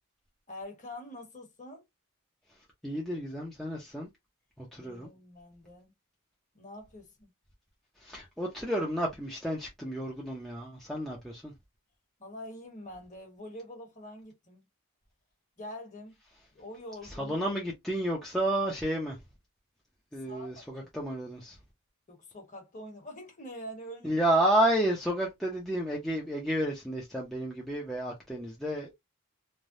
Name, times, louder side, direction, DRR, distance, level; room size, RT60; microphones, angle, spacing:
voice 1, 0.5-1.8 4.8-5.9 6.5-7.3 12.2-14.6 15.6-16.1 16.5-17.4 20.2-20.9 22.1-24.2, left 1 dB, 35° left, 1.3 m, -45 dB
voice 2, 2.8-4.1 4.6-5.1 8.0-11.5 17.2-19.2 20.1-21.6 24.0-28.9, right 1 dB, ahead, 0.6 m, -31 dB
3.2 x 2.2 x 2.6 m
head